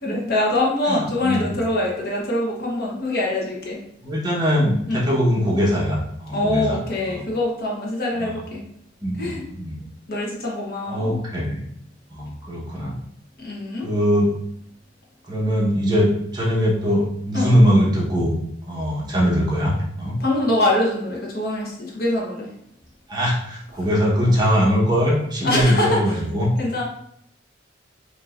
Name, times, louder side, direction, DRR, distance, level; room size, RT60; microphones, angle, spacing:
voice 1, 0.0-3.8 4.9-5.0 6.3-8.6 9.1-9.4 10.1-11.2 13.4-13.9 17.3-17.5 20.2-22.5 25.4-26.0 26.6-26.8, left 1 dB, 55° left, -3 dB, 1.1 m, -24 dB
voice 2, 0.9-1.5 4.0-7.2 8.2-8.3 9.0-9.8 10.9-11.6 12.1-12.9 13.8-14.3 15.3-18.3 18.6-20.2 23.1-26.5, equal, 20° right, -5 dB, 1.2 m, -21 dB
5.1 x 2.9 x 2.6 m, 0.71 s
head